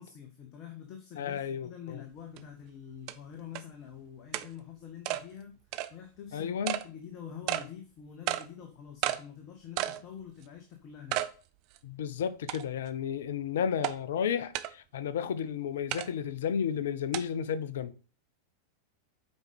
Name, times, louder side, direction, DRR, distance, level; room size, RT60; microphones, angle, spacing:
voice 1, 0.0-5.6 5.9-6.5 6.8-11.3, left 8 dB, 35° left, 1.4 m, -46 dB
voice 2, 1.2-2.0 6.3-6.8 11.8-17.9, left 8 dB, 60° left, 0.7 m, -32 dB
sound 1, 2.4-2.5 3.1-3.2 3.6-3.7 4.3-4.5 5.1-5.2 5.7-5.9 6.7-6.8 7.5-7.7 8.3-8.4 9.0-9.2 9.8-10.0 10.4-10.5 11.1-11.3 11.8-11.9 12.5-12.9 13.8-13.9 14.5-14.7 15.9-16.1 17.1-17.2, right 15 dB, 45° right, 0.6 m, -32 dB
8.1 x 5.2 x 5.2 m
figure-of-eight pair, 90°, 0 cm